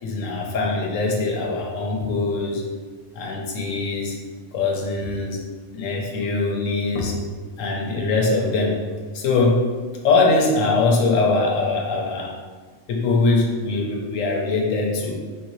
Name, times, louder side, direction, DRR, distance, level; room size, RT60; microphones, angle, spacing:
voice 1, 0.0-2.6 3.1-4.2 4.5-5.4 5.7-7.2 7.6-8.8 9.1-9.7 10.0-12.4 12.9-15.1, left 3 dB, 85° left, 0 dB, 1.1 m, -22 dB
5.1 x 2.6 x 3.1 m, 1.5 s
omnidirectional pair, 1.3 m